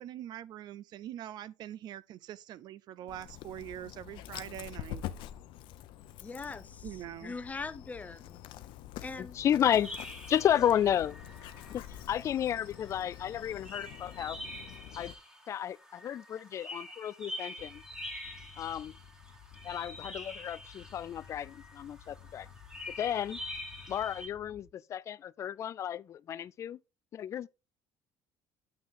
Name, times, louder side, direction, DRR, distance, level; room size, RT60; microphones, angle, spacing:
voice 1, 0.0-5.0 6.8-7.4, right 12 dB, 55° right, 0.5 m, -43 dB
Dog, 3.1-15.1, left 12 dB, 70° left, 0.7 m, -46 dB
voice 2, 6.2-6.9 7.2-8.4 9.0-9.3, left 4 dB, 15° left, 0.7 m, -41 dB
voice 3, 9.2-9.9 10.3-11.2 11.7-14.4 15.0-15.1 15.5-17.8 18.6-18.9 19.6-22.5 23.0-23.4 23.9-26.8 27.1-27.5, left 10 dB, 35° left, 0.4 m, -32 dB
sound 1, 9.7-24.3, left 1 dB, 5° right, 2.1 m, -46 dB
sound 2, 17.6-24.6, left 9 dB, 90° left, 1.1 m, -55 dB
8.2 x 6.0 x 3.7 m
cardioid pair, 150°, 9 cm